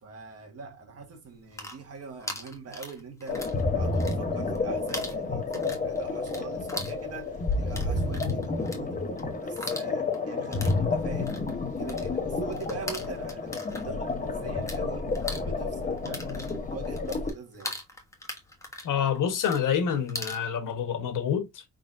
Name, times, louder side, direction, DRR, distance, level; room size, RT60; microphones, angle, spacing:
voice 1, 0.0-9.1 9.4-11.4 11.8-17.8, right 4 dB, 50° right, 1.5 m, -43 dB
sound 1, 1.3-3.6 3.9-4.6 4.9-14.8 15.1-20.4, left 1 dB, 10° left, 1.2 m, -40 dB
sound 2, 3.3-17.3, left 3 dB, 25° left, 0.9 m, -30 dB
voice 2, 18.8-21.6, left 8 dB, 80° left, 1.2 m, -27 dB
5.3 x 3.8 x 2.5 m
wide cardioid pair, 165°, 31 cm